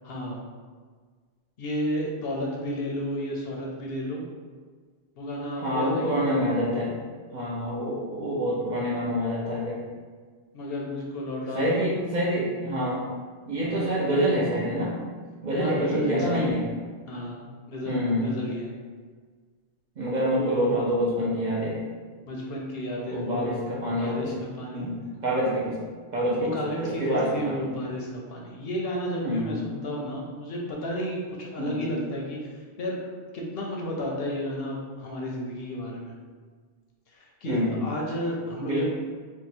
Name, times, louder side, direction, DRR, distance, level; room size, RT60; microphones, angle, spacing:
voice 1, 0.0-0.4 1.6-4.2 5.2-6.2 7.4-7.7 10.5-11.8 13.6-13.9 15.6-16.6 17.1-18.7 20.3-20.8 22.3-23.6 24.0-24.9 26.4-36.1 37.1-38.8, equal, 65° left, -2 dB, 0.7 m, -32 dB
voice 2, 5.6-7.0 7.3-9.8 11.5-13.0 13.5-14.9 15.4-16.6 17.9-18.3 20.0-21.8 23.1-24.3 24.7-25.8 26.1-27.6 29.2-29.6 31.6-31.9 37.4-37.8 38.6-38.8, equal, 50° right, -6 dB, 0.6 m, -26 dB
2.7 x 2.1 x 4.0 m, 1.5 s
omnidirectional pair, 1.2 m